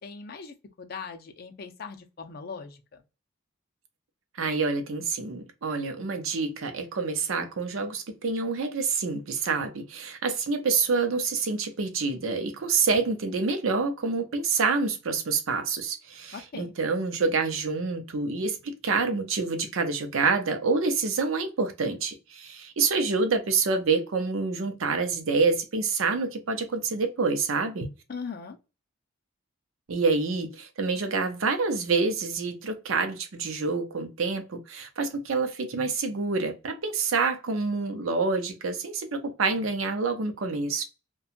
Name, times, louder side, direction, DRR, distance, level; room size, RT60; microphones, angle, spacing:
voice 1, 0.0-3.0 16.3-16.7 28.1-28.6, left 5 dB, 45° left, 0.5 m, -40 dB
voice 2, 4.4-27.9 29.9-40.8, right 4 dB, 75° right, 0.6 m, -27 dB
2.8 x 2.2 x 2.4 m
head